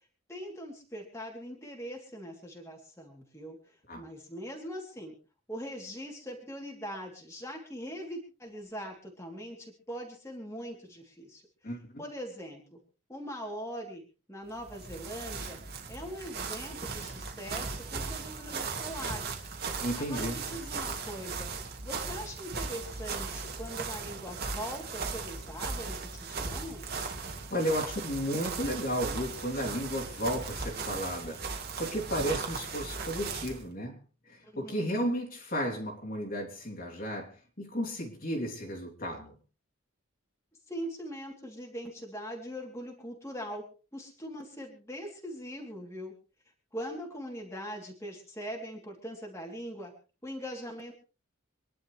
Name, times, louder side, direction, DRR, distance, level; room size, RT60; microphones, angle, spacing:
voice 1, 0.3-5.2 5.5-11.4 12.0-12.8 13.1-14.0 14.3-15.6 15.9-19.4 19.9-21.5 21.8-26.8 34.4-34.9 40.7-43.6 43.9-46.1 46.7-49.9 50.2-50.9, equal, 15° left, -1 dB, 3.0 m, -41 dB
voice 2, 11.6-12.0 19.8-20.4 27.5-34.0 34.3-39.3, equal, 40° left, -1 dB, 3.3 m, -33 dB
sound 1, 14.5-33.6, right 4 dB, 45° right, 2.5 m, -37 dB
26.5 x 11.0 x 3.3 m, 0.35 s
head